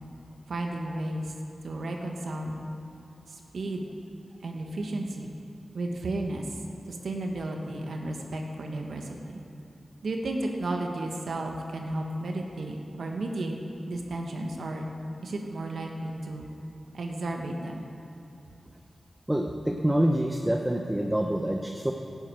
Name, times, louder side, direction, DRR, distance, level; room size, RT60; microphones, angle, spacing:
voice 1, 0.5-1.3 1.6-2.5 3.3-3.9 4.4-5.3 5.7-6.6 6.9-9.4 10.0-13.5 13.9-14.9 15.2-16.5 16.9-17.9, right 2 dB, 85° right, 2 dB, 1.2 m, -33 dB
voice 2, 19.3-21.9, right 1 dB, 10° right, 3 dB, 0.7 m, -26 dB
11.5 x 7.9 x 8.8 m, 2.9 s
wide cardioid pair, 100°, 0 cm